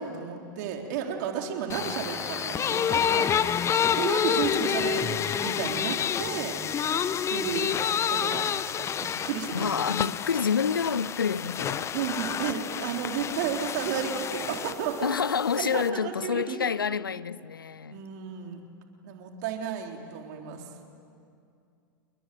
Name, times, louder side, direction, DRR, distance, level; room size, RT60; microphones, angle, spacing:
voice 1, 0.0-6.6 7.3-7.8 8.1-9.7 11.9-15.2 15.6-16.6 17.9-18.6 19.0-20.7, right 7 dB, 55° right, 3.8 m, -33 dB
sound 1, 1.7-15.9, left 8 dB, 25° left, 0.9 m, -29 dB
Meow, 1.7-2.6, right 5 dB, 15° right, 2.1 m, -47 dB
voice 2, 9.5-11.9 15.0-18.0, left 6 dB, 80° left, 0.6 m, -28 dB
28.5 x 21.0 x 9.4 m
figure-of-eight pair, 90°, 11 cm